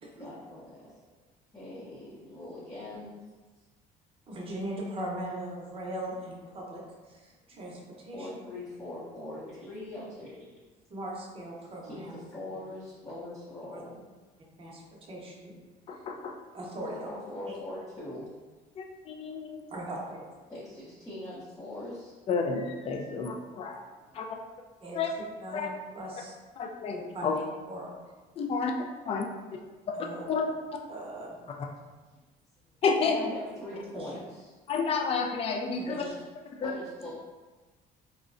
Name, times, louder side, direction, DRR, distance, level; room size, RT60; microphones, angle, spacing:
voice 1, 0.2-1.0 1.5-3.2 8.1-10.3 11.9-12.0 12.3-14.0 16.8-18.3 20.5-22.1 24.3-24.5 33.0-34.5 35.9-36.2 36.6-37.1, left 1 dB, 20° left, -10 dB, 0.7 m, -41 dB
voice 2, 4.3-6.8 7.1-8.3 10.9-12.1 13.7-13.8 14.6-14.8 15.1-15.5 16.5-17.1 17.5-17.6 19.7-20.2 24.1-24.2 24.8-25.0 25.4-26.3 26.9-27.9 29.9-30.2 30.9-31.4 33.9-34.1 35.8-36.1, right 1 dB, 35° right, -4 dB, 0.7 m, -39 dB
voice 3, 15.9-16.3 18.8-19.5 22.3-23.8 24.1-24.3 24.9-25.1 25.5-25.7 26.6-27.4 28.4-28.7 29.1-29.3 30.3-30.4 32.8-33.2 34.7-36.0 36.6-36.7, left 5 dB, 35° left, 2 dB, 0.4 m, -30 dB
3.6 x 2.1 x 2.5 m, 1.3 s
cardioid pair, 110°, 17 cm